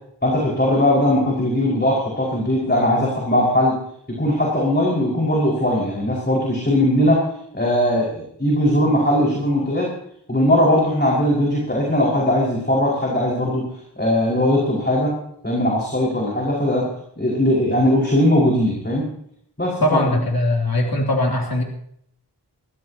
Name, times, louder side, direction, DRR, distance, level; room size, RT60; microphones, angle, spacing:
voice 1, 0.2-3.8 4.1-7.2 7.5-9.9 10.3-13.7 14.0-15.1 15.4-16.9 17.2-19.0 19.6-20.2, left 1 dB, 25° left, -4 dB, 5.4 m, -19 dB
voice 2, 19.8-21.6, left 1 dB, 55° left, -1 dB, 3.2 m, -20 dB
23.0 x 15.5 x 3.0 m, 0.69 s
wide cardioid pair, 70°, 42 cm